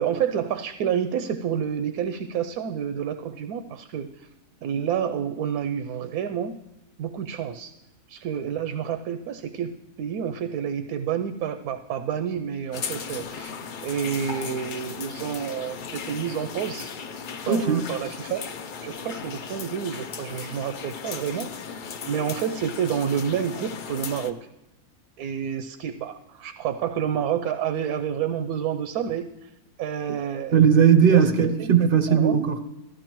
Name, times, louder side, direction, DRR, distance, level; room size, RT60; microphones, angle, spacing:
voice 1, 0.0-4.3 4.6-6.6 7.0-7.7 8.1-16.9 17.4-18.4 18.8-21.6 22.0-24.4 25.2-29.5 29.8-30.6 31.0-31.3 31.6-32.4, right 8 dB, 85° right, 9 dB, 1.1 m, -29 dB
sound 1, 12.7-24.3, left 6 dB, 65° left, 0.5 m, -36 dB
voice 2, 17.5-17.9 30.5-32.6, right 7 dB, 55° right, 8 dB, 0.6 m, -18 dB
14.0 x 12.5 x 3.0 m, 0.92 s
omnidirectional pair, 1.5 m